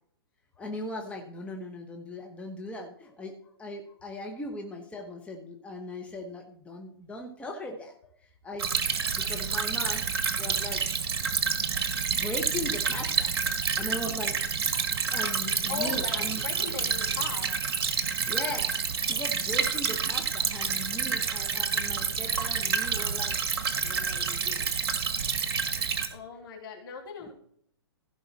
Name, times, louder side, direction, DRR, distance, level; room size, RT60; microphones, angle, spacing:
voice 1, 0.6-8.7 9.1-10.0 10.4-10.8 12.1-13.3 13.8-14.4 15.1-16.4 18.3-18.7 19.0-23.3 23.8-24.7, left 1 dB, 10° left, 1 dB, 1.3 m, -39 dB
Stream / Trickle dribble, 8.6-26.1, right 6 dB, 60° right, 1.6 m, -29 dB
voice 2, 15.7-17.6 25.8-27.3, left 6 dB, 55° left, 1 dB, 3.1 m, -39 dB
15.5 x 5.5 x 4.3 m, 0.64 s
hypercardioid pair, 120°, 14 cm